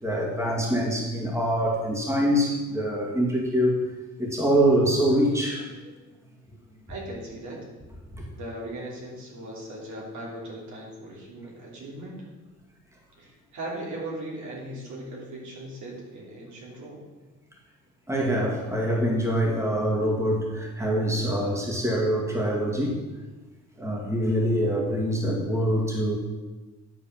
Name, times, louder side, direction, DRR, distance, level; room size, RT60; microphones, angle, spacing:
voice 1, 0.0-3.7 4.2-5.9 8.2-8.3 18.1-23.0 23.8-26.2, equal, 10° right, -1 dB, 2.1 m, -24 dB
voice 2, 6.9-7.6 8.3-12.3 13.2-17.1, right 1 dB, 70° right, -3 dB, 3.0 m, -38 dB
10.5 x 4.1 x 7.3 m, 1.2 s
cardioid pair, 90°, 30 cm